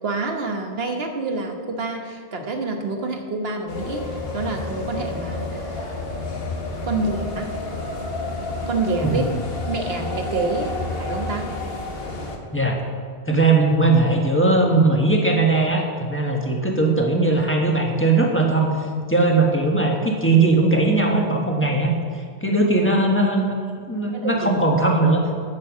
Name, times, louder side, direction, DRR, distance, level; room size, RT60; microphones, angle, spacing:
voice 1, 0.0-5.9 6.8-7.5 8.7-9.3 9.7-11.5 24.1-24.5, right 3 dB, 75° right, 3 dB, 1.4 m, -27 dB
sound 1, 3.7-12.4, left 2 dB, 70° left, 1.4 m, -30 dB
voice 2, 13.2-18.7 19.1-23.5 23.9-25.4, right 2 dB, 10° left, 0 dB, 1.3 m, -19 dB
9.6 x 6.9 x 7.2 m, 2.2 s
omnidirectional pair, 1.0 m